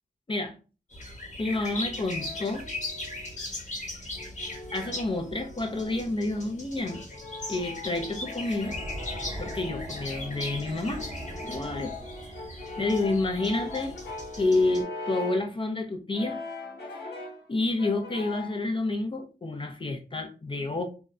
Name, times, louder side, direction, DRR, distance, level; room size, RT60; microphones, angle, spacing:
sound 1, 0.9-14.8, left 2 dB, 45° left, 1.1 m, -39 dB
voice 1, 1.4-2.7 4.7-7.0 7.5-8.8 9.0-11.0 11.4-11.9 12.8-13.9 14.4-16.4 17.5-20.9, left 2 dB, 30° left, 0.5 m, -29 dB
Brass instrument, 1.5-3.4 4.1-6.2 6.9-15.5 16.1-17.5 17.8-18.6, left 3 dB, 80° left, 0.7 m, -41 dB
sound 2, 8.6-14.1, right 1 dB, 15° right, 0.6 m, -42 dB
2.7 x 2.0 x 2.3 m
cardioid pair, 55°, 17 cm